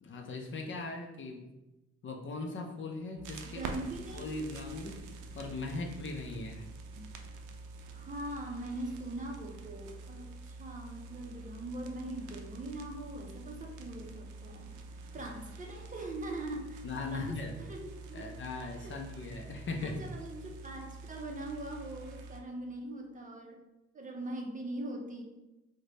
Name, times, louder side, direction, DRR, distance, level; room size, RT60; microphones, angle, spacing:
voice 1, 0.0-1.5 2.0-3.6 4.1-5.0 5.3-6.7 15.7-15.8 16.8-17.5 18.1-20.0, left 3 dB, 40° left, 3 dB, 0.5 m, -39 dB
sound 1, 3.2-22.4, right 3 dB, 85° right, 0.5 m, -47 dB
voice 2, 3.4-4.4 5.8-5.9 6.9-7.1 7.9-14.7 15.1-19.3 19.8-23.6 23.9-25.2, right 1 dB, 25° right, 1 dB, 0.6 m, -42 dB
3.2 x 2.2 x 3.8 m, 0.99 s
cardioid pair, 90°, 30 cm